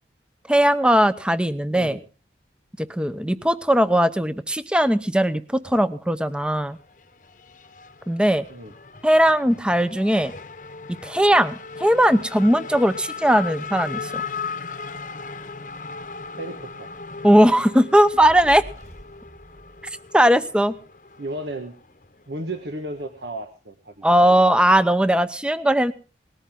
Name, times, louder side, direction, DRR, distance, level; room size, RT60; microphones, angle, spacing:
voice 1, 0.5-2.0 2.8-6.8 8.1-8.5 9.0-10.3 11.0-14.2 17.2-18.6 20.1-20.7 24.0-25.9, equal, 5° right, 13 dB, 0.8 m, -19 dB
Race car auto racing / Accelerating revving vroom, 6.3-23.3, left 5 dB, 45° left, 1.0 m, -38 dB
voice 2, 16.4-16.9 21.2-21.7 22.3-24.5, right 1 dB, 80° right, 6 dB, 1.5 m, -34 dB
Fire, 18.1-20.5, equal, 40° right, 5.4 m, -44 dB
19.5 x 14.0 x 3.8 m, 0.34 s
head